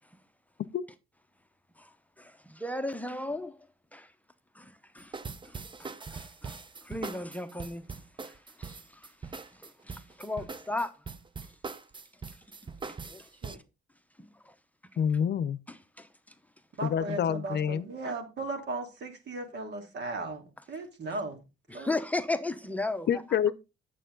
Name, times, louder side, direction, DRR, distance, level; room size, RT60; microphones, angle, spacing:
voice 1, 2.2-3.6 3.9-4.1 4.5-5.1 5.4-6.6 6.8-8.0 8.2-8.3 8.6-9.1 9.3-10.9 12.8-13.3 14.5-14.6 15.7-16.1 18.0-18.1 21.7-23.1, left 2 dB, 5° left, 0.9 m, -36 dB
sound 1, 5.0-13.6, right 4 dB, 25° right, 0.7 m, -41 dB
voice 2, 15.0-15.6 16.8-17.9 23.1-23.5, left 8 dB, 60° left, 0.7 m, -27 dB
voice 3, 16.8-21.4 21.7-21.9, right 3 dB, 60° right, 2.7 m, -37 dB
9.0 x 7.6 x 3.9 m
cardioid pair, 90°, 20 cm